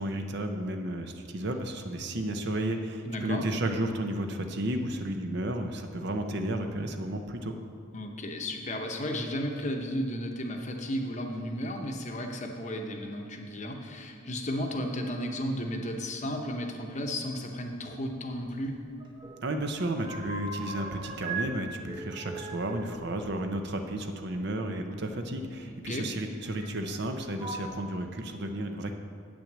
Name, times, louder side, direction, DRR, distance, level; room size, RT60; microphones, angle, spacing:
voice 1, 0.0-7.6 19.4-28.9, right 1 dB, 50° right, 6 dB, 0.7 m, -32 dB
voice 2, 3.0-3.4 7.9-18.7 25.8-26.1, equal, 35° left, 3 dB, 0.8 m, -34 dB
sound 1, 18.5-19.4 19.7-21.5 21.8-24.3 25.4-25.5 26.4-27.0 27.3-27.7, right 3 dB, 20° right, 0.9 m, -40 dB
8.4 x 6.1 x 7.3 m, 2.3 s
head